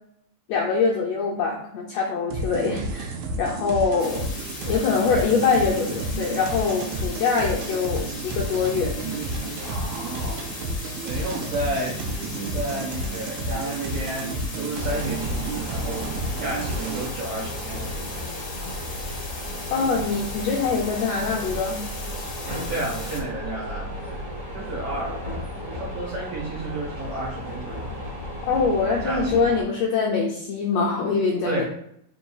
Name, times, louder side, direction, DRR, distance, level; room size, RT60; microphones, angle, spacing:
voice 1, 0.5-4.3 4.6-9.0 19.7-21.8 28.5-31.6, left 5 dB, 80° left, -2 dB, 1.5 m, -24 dB
sound 1, 2.3-17.1, right 2 dB, 80° right, 1.8 m, -31 dB
sound 2, 4.0-23.2, left 3 dB, 65° left, 1.1 m, -38 dB
voice 2, 9.6-12.0 12.4-16.1 16.4-18.1 22.7-24.3 24.5-25.1 25.7-27.9 28.7-29.5 31.5-31.6, right 2 dB, 60° right, -4 dB, 1.8 m, -32 dB
sound 3, 14.7-29.6, left 1 dB, 40° right, 1.4 m, -34 dB
4.6 x 3.8 x 2.3 m, 0.72 s
omnidirectional pair, 3.5 m